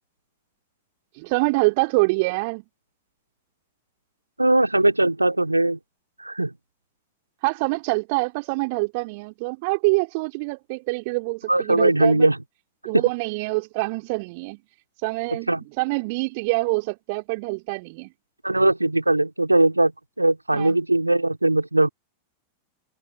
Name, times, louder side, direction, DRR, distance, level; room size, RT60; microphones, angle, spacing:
voice 1, 1.1-2.6 7.4-12.3 12.8-14.6 15.0-18.1 20.5-20.8, right 28 dB, 45° right, 2.7 m, -25 dB
voice 2, 4.4-5.8 6.2-6.5 11.5-12.4 12.9-13.0 15.5-15.6 18.4-19.9 20.2-21.9, right 2 dB, 85° right, 3.4 m, -20 dB
figure-of-eight pair, 90°, 0 cm